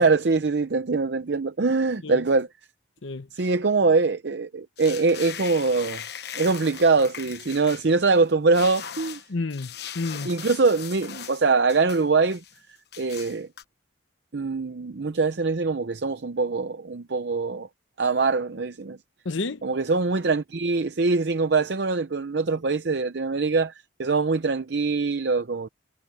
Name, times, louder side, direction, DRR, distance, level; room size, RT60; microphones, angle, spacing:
voice 1, 0.0-2.5 3.3-6.0 6.3-9.2 10.2-12.4 13.0-13.5 14.3-17.7 18.0-19.0 19.6-23.7 24.0-25.7, right 4 dB, 60° right, 0.6 m, -23 dB
voice 2, 3.0-3.5 9.3-10.3 19.2-19.6, left 3 dB, 75° left, 0.9 m, -31 dB
sound 1, 4.8-8.2 8.5-11.4 11.7-12.6 12.9-13.6, left 9 dB, 55° left, 1.0 m, -39 dB
head